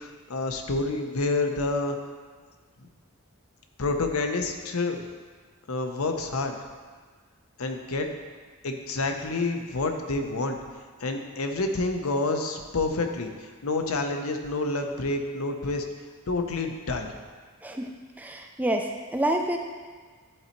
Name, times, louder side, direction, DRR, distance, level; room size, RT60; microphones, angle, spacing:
voice 1, 0.0-2.0 3.8-5.1 5.7-6.5 7.6-8.1 8.6-10.6 11.0-15.8 16.3-17.1, left 3 dB, 80° left, 4 dB, 0.8 m, -28 dB
voice 2, 18.2-19.6, right 1 dB, 5° right, 3 dB, 0.4 m, -28 dB
11.0 x 4.1 x 4.5 m, 1.5 s
head